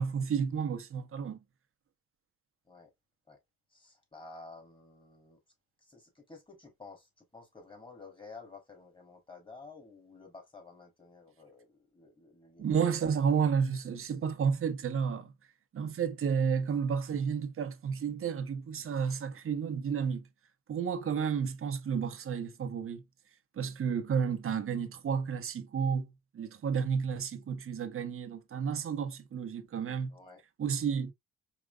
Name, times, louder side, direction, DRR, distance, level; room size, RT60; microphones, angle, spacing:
voice 1, 0.0-1.4 12.6-15.3 15.7-20.2 20.7-23.0 23.6-30.1 30.6-31.1, right 6 dB, 45° right, 1.0 m, -31 dB
voice 2, 3.7-5.4 5.8-12.8 30.1-30.4, left 3 dB, 15° left, 2.9 m, -52 dB
4.9 x 3.0 x 2.4 m
cardioid pair, 90°, 30 cm